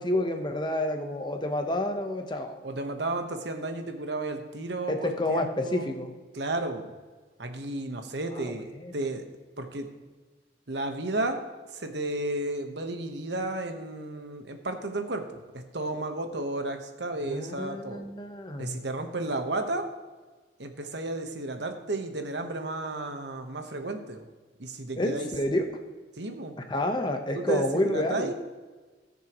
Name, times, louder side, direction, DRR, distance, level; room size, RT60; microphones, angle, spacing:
voice 1, 0.0-2.6 4.9-6.1 8.4-8.5 8.8-8.9 17.3-18.8 25.0-25.7 26.7-28.3, left 1 dB, 25° left, 4 dB, 1.0 m, -29 dB
voice 2, 2.6-6.0 6.3-6.9 7.4-9.2 9.6-9.9 10.7-11.4 11.7-18.0 18.6-19.9 20.6-24.3 24.6-25.3 26.2-26.5 27.3-28.3, right 2 dB, 70° right, 6 dB, 1.2 m, -33 dB
19.5 x 6.8 x 3.1 m, 1.3 s
head